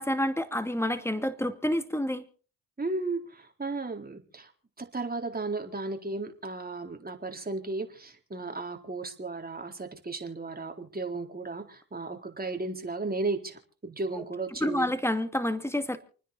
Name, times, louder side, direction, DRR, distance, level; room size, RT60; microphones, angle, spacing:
voice 1, 0.0-2.2 14.1-14.2 14.6-16.0, left 1 dB, 5° left, 9 dB, 2.5 m, -28 dB
voice 2, 2.8-4.5 4.8-14.9, right 3 dB, 25° right, 3 dB, 4.0 m, -35 dB
29.0 x 9.9 x 4.1 m, 0.40 s
supercardioid pair, 55°, 39 cm